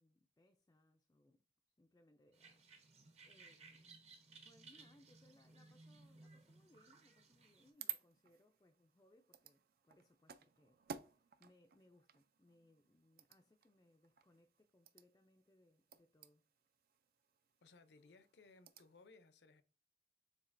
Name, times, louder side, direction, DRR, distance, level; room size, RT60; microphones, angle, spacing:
voice 1, 0.0-1.4 1.8-4.0 4.4-16.5, left 1 dB, 20° left, 0.3 m, -71 dB
sound 1, 2.3-7.7, right 3 dB, 35° right, 0.8 m, -61 dB
sound 2, 7.4-19.1, right 9 dB, 55° right, 0.4 m, -55 dB
voice 2, 17.6-19.6, left 3 dB, 70° left, 0.6 m, -64 dB
7.2 x 2.8 x 2.5 m
head